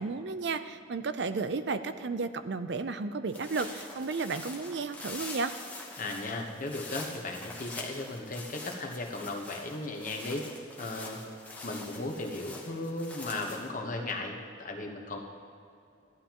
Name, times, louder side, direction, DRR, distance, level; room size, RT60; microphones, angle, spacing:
voice 1, 0.0-5.5, right 4 dB, 65° right, 11 dB, 0.5 m, -33 dB
sound 1, 3.3-13.7, left 2 dB, 10° left, 1.1 m, -45 dB
voice 2, 6.0-10.5 10.8-11.2 11.6-15.2, left 2 dB, 45° left, 2 dB, 1.2 m, -36 dB
15.0 x 11.0 x 3.0 m, 2.6 s
head